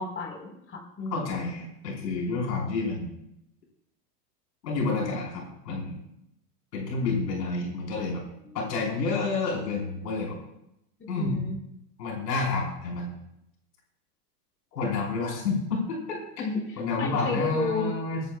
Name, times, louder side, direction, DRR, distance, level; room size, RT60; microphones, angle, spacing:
voice 1, 0.0-1.5 8.4-8.6 11.2-11.6 16.4-17.9, left 3 dB, 25° left, -1 dB, 4.8 m, -32 dB
voice 2, 1.1-3.1 4.6-6.0 6.7-8.2 8.5-10.4 11.1-11.5 12.0-13.2 14.7-16.2 16.8-18.2, left 3 dB, 85° left, -2 dB, 4.8 m, -29 dB
26.5 x 11.0 x 2.4 m, 0.78 s
hypercardioid pair, 115°, 48 cm